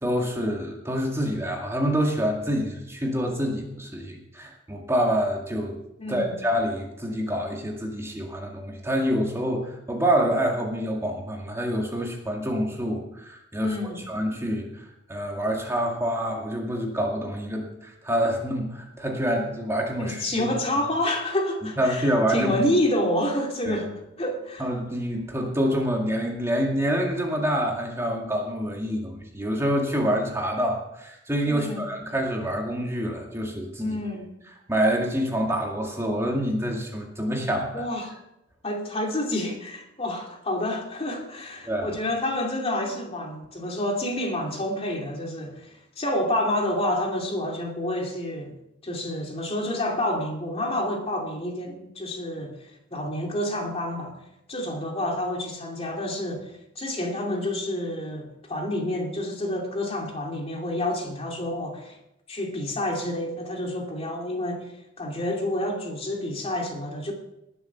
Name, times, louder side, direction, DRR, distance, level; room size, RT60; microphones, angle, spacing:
voice 1, 0.0-5.8 6.1-20.5 21.8-22.5 23.7-23.8 24.6-34.0 34.7-37.9 41.6-41.9, equal, 15° right, 0 dB, 2.1 m, -27 dB
voice 2, 6.0-6.3 13.6-14.0 20.0-24.7 31.4-31.9 33.8-34.3 37.7-38.1 38.6-45.7 46.0-48.5 48.8-52.5 52.9-54.2 54.5-62.0 62.3-64.7 65.0-67.1, left 1 dB, 35° left, 1 dB, 2.6 m, -28 dB
20.0 x 7.2 x 5.9 m, 0.85 s
head